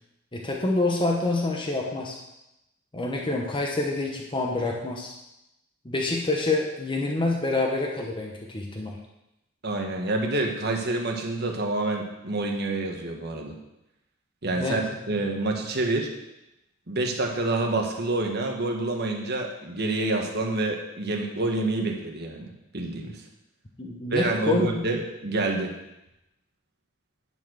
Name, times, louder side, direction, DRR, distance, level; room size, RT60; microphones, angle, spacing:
voice 1, 0.3-2.2 2.9-5.1 5.8-9.0 14.6-14.8 23.8-24.8, left 2 dB, 25° left, 0 dB, 1.0 m, -27 dB
voice 2, 9.6-13.5 14.4-14.8 15.1-16.1 16.9-23.2 24.1-25.7, right 2 dB, 55° right, 1 dB, 1.4 m, -27 dB
10.5 x 4.6 x 6.3 m, 0.89 s
head